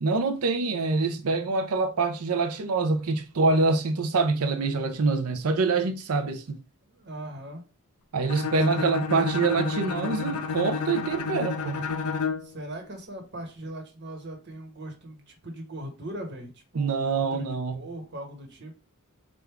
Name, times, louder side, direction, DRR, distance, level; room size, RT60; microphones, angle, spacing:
voice 1, 0.0-6.6 8.1-11.8 16.7-17.8, right 4 dB, 85° right, 0.6 m, -25 dB
voice 2, 6.8-7.6 8.7-8.9 12.4-18.7, right 1 dB, 55° right, 1.2 m, -40 dB
Bowed string instrument, 8.3-12.5, left 5 dB, 90° left, 0.6 m, -30 dB
3.5 x 2.5 x 4.5 m
head